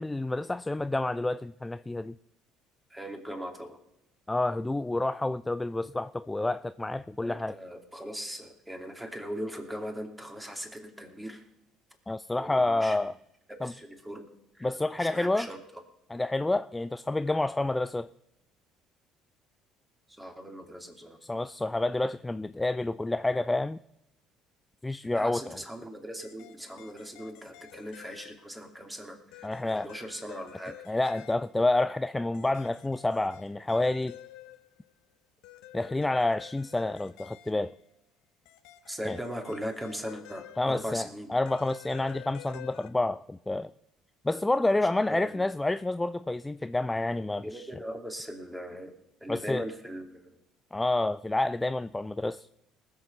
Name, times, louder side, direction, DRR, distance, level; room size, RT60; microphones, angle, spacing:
voice 1, 0.0-2.2 4.3-7.6 12.1-13.1 13.6-13.7 14.6-15.5 16.1-18.1 21.2-23.8 24.8-25.6 29.4-29.9 30.9-34.2 35.7-37.7 39.1-39.2 40.6-43.7 44.2-47.7 49.3-49.6 50.7-52.5, left 2 dB, 15° left, 0.4 m, -29 dB
voice 2, 2.9-3.8 7.2-11.4 12.4-13.0 13.5-14.3 14.5-14.7 15.0-15.6 20.1-21.2 25.1-30.8 38.8-41.3 44.8-45.4 47.4-48.9 49.2-50.2, equal, 10° right, 2.6 m, -39 dB
sound 1, 26.2-28.6 29.3-31.7 32.3-34.9 35.4-37.8 38.4-41.1 41.4-42.9, left 14 dB, 75° left, 0.8 m, -51 dB
20.0 x 6.9 x 5.5 m
hypercardioid pair, 70°, 0 cm